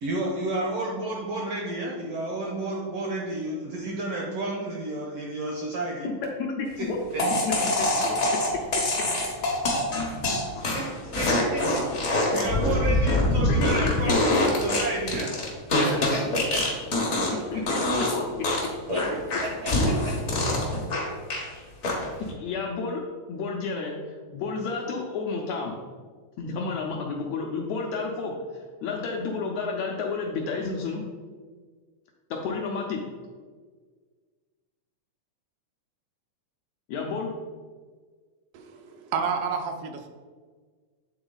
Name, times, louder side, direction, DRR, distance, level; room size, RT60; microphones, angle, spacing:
voice 1, 0.0-6.1 6.8-6.9 7.1-7.2 10.7-11.9 12.3-15.3 15.7-16.2 16.5-16.6 17.0-17.6 18.9-19.1 19.4-20.2, right 2 dB, 75° right, -2 dB, 1.4 m, -32 dB
voice 2, 6.4-7.0 7.4-8.2 10.3-10.6 13.4-13.8 15.9-16.1 17.5-17.8 18.1-18.2 22.4-23.0 23.3-23.9 24.3-25.7 26.4-31.0 32.3-33.0 36.9-37.3, left 4 dB, 80° left, 0 dB, 1.6 m, -31 dB
sound 1, 7.2-17.4 17.7-18.1 18.4-21.5 21.8-22.3, left 1 dB, 60° left, 0.8 m, -24 dB
voice 3, 38.5-40.1, right 6 dB, 90° right, 4 dB, 2.4 m, -30 dB
8.7 x 3.9 x 3.9 m, 1.5 s
omnidirectional pair, 3.7 m